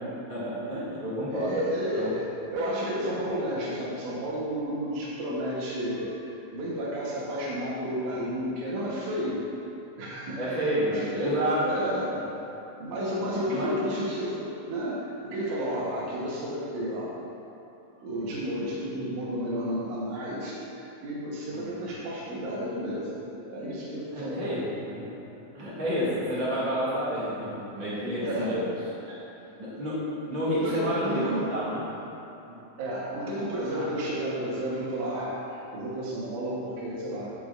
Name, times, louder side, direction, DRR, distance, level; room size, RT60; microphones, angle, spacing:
voice 1, 0.3-1.6 2.0-2.1 10.4-11.9 13.2-13.8 18.2-18.3 21.5-21.7 24.1-25.1 25.5-28.6 29.0-29.1 29.6-31.8 32.5-32.6 33.8-33.9, equal, 20° right, -11 dB, 1.5 m, -30 dB
voice 2, 1.3-9.4 10.0-12.2 12.7-17.1 18.0-23.2 23.5-24.7 28.2-28.6 29.5-29.6 30.5-31.5 32.8-37.3, equal, 85° right, -6 dB, 2.6 m, -32 dB
14.5 x 5.9 x 2.4 m, 2.9 s
omnidirectional pair, 3.4 m